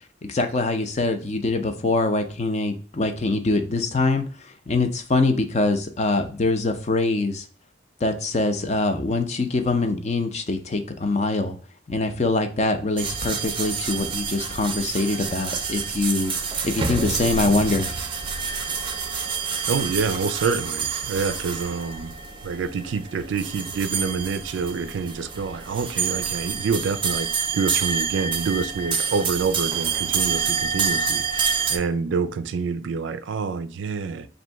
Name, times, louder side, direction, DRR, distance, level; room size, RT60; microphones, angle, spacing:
voice 1, 0.2-7.5 8.0-11.6 11.9-16.3 16.6-17.9, left 3 dB, 35° left, 0.5 m, -24 dB
sound 1, 13.0-31.8, right 6 dB, 25° right, 0.5 m, -28 dB
voice 2, 19.7-22.1 22.4-34.3, right 5 dB, 85° right, 0.4 m, -27 dB
3.0 x 2.7 x 4.4 m
head